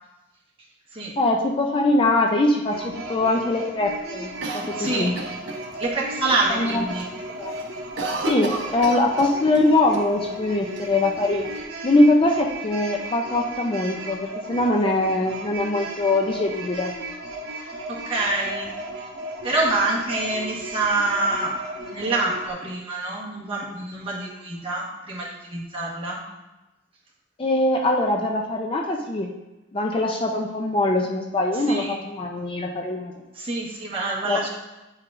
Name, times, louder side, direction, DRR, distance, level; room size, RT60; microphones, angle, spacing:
voice 1, 1.2-5.1 6.5-7.5 8.3-11.5 11.8-16.9 27.4-29.3 29.7-33.1 34.2-34.4, left 2 dB, 25° left, 2 dB, 0.4 m, -22 dB
sound 1, 2.7-22.5, right 1 dB, 55° right, 1.2 m, -35 dB
Cough, 4.4-5.9 6.3-6.4 6.7-7.1 7.4-9.7 9.9-10.0 10.8-11.6, right 3 dB, 70° right, 0.8 m, -32 dB
voice 2, 4.7-5.2 5.8-7.1 17.6-18.7 19.4-21.6 21.9-26.2 31.7-32.0 33.3-34.5, right 2 dB, 30° right, -5 dB, 1.3 m, -26 dB
8.6 x 4.6 x 2.5 m, 1.0 s
head